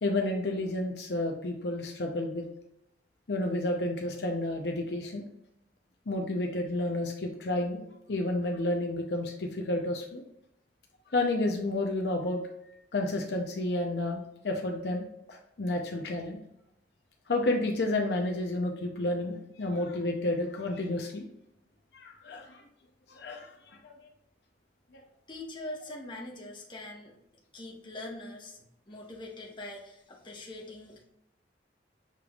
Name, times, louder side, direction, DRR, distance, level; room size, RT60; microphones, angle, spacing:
voice 1, 0.0-2.4 3.3-5.2 6.1-7.8 8.1-10.2 11.1-12.4 12.9-15.0 15.3-16.4 17.3-21.2 21.9-22.6 23.1-23.9, left 2 dB, 65° left, 2 dB, 0.6 m, -31 dB
voice 2, 25.3-27.1 27.5-31.0, left 1 dB, 25° left, -2 dB, 1.1 m, -43 dB
6.6 x 3.3 x 2.3 m, 0.80 s
head